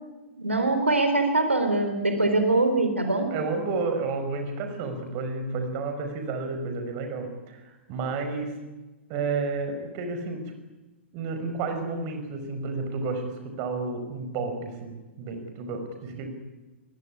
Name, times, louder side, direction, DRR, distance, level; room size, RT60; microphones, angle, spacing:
voice 1, 0.3-3.3, right 2 dB, 80° right, 7 dB, 3.8 m, -23 dB
voice 2, 3.3-8.6 9.1-10.5 11.1-16.3, right 4 dB, 35° right, 7 dB, 5.3 m, -31 dB
23.5 x 22.0 x 10.0 m, 1.1 s
figure-of-eight pair, 110°, 6 cm